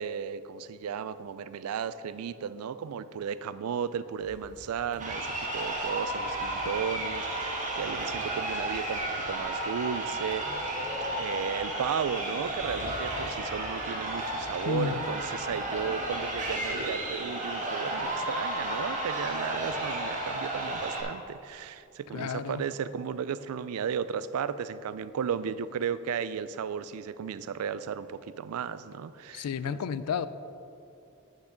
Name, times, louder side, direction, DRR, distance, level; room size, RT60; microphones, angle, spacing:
voice 1, 0.0-10.8 11.1-29.8, right 7 dB, 75° right, 15 dB, 0.3 m, -35 dB
sound 1, 4.2-16.8, equal, 55° right, 1.8 m, -50 dB
Crowd, 4.9-21.0, right 1 dB, 35° right, 1.4 m, -33 dB
voice 2, 14.7-15.0 22.1-22.6 29.3-30.3, left 7 dB, 90° left, 15 dB, 0.4 m, -31 dB
8.3 x 6.0 x 5.1 m, 2.6 s
head